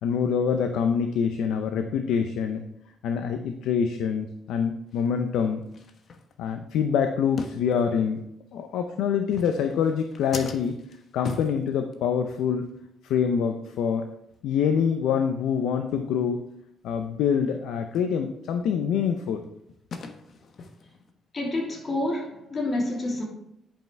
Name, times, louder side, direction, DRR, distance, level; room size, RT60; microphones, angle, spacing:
voice 1, 0.0-2.7 3.0-5.6 6.4-8.2 8.5-10.8 11.1-12.7 13.0-14.1 14.4-16.4 16.8-19.4, left 7 dB, 85° left, 0.7 m, -25 dB
sound 1, 4.9-5.0 5.7-6.7 7.4-8.2 9.2-12.4 12.7-12.9 13.2-13.4 13.8-13.9 14.3-14.5 14.8-14.9 15.3-15.4 15.9-16.0 17.9-18.1 18.6-21.1, left 4 dB, 55° left, 1.1 m, -41 dB
voice 2, 21.3-23.2, left 1 dB, 35° left, 3.1 m, -28 dB
10.0 x 5.7 x 4.6 m
cardioid pair, 90°, 0 cm